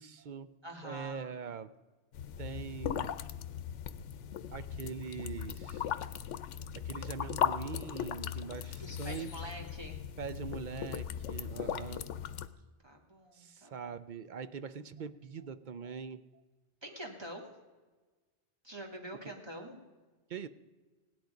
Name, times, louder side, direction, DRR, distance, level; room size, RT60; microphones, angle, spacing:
voice 1, 0.0-0.5 0.8-1.7 2.4-3.2 4.5-5.9 6.7-9.5 10.2-12.1 13.3-16.2 19.2-19.3 20.3-20.5, right 6 dB, 55° right, 13 dB, 0.6 m, -42 dB
voice 2, 0.6-1.3 8.8-10.0 11.6-11.7 12.2-12.5 12.8-13.9 16.8-17.5 18.6-19.8, equal, 20° right, 0 dB, 2.1 m, -46 dB
sound 1, 2.1-12.5, left 9 dB, 90° left, 1.0 m, -38 dB
17.0 x 11.0 x 5.1 m, 1.3 s
omnidirectional pair, 1.2 m